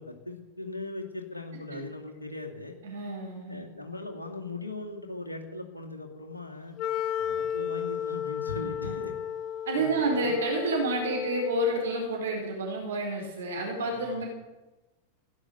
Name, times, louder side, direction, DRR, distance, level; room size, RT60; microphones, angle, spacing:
voice 1, 0.0-2.7 3.5-6.8 7.2-9.1 9.7-10.4 13.8-14.2, left 2 dB, 80° left, 2 dB, 2.4 m, -39 dB
voice 2, 2.8-3.6 8.6-8.9 9.7-14.3, right 2 dB, 65° right, 0 dB, 4.3 m, -29 dB
Wind instrument woodwind instrument, 6.8-11.9, left 9 dB, 40° left, 0.8 m, -33 dB
16.0 x 11.0 x 6.8 m, 1.1 s
figure-of-eight pair, 90°, 0 cm